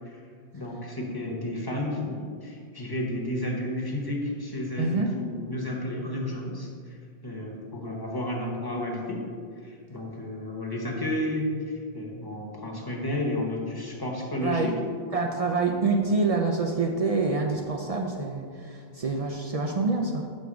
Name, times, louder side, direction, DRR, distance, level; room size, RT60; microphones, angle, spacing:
voice 1, 0.5-7.0 7.2-9.2 9.6-14.7, left 1 dB, 20° left, -2 dB, 0.9 m, -32 dB
voice 2, 4.8-5.1 14.4-14.7 15.1-20.3, right 3 dB, 55° right, 2 dB, 0.4 m, -26 dB
6.3 x 3.4 x 6.1 m, 2.1 s
omnidirectional pair, 1.1 m